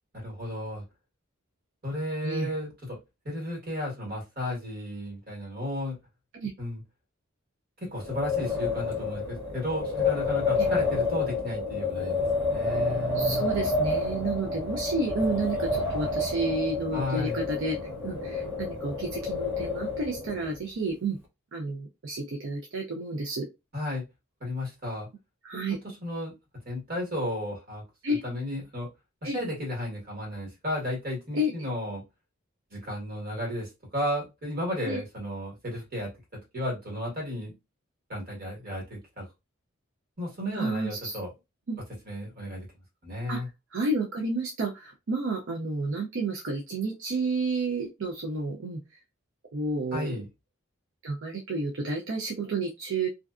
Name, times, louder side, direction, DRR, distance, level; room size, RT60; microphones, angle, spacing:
voice 1, 0.1-0.8 1.8-3.0 3.2-6.0 6.6-6.8 7.8-12.2 12.5-13.5 16.9-17.4 23.7-24.0 24.4-25.1 25.8-26.3 26.6-28.9 29.2-32.0 32.7-36.1 36.5-37.5 38.1-39.2 40.2-41.3 42.0-42.7 43.0-43.5 49.9-50.3, left 1 dB, 45° right, -2 dB, 1.4 m, -33 dB
Wind, 7.9-20.6, left 3 dB, 10° right, 0.8 m, -29 dB
voice 2, 13.1-17.8 18.0-21.2 21.5-23.5 25.4-25.8 28.0-28.2 29.2-29.4 31.3-31.5 34.8-35.0 40.5-41.2 41.7-41.8 43.3-43.4 43.7-48.8 49.5-50.2 51.0-53.1, right 2 dB, 60° right, 1 dB, 0.5 m, -31 dB
2.5 x 2.2 x 2.4 m, 0.24 s
head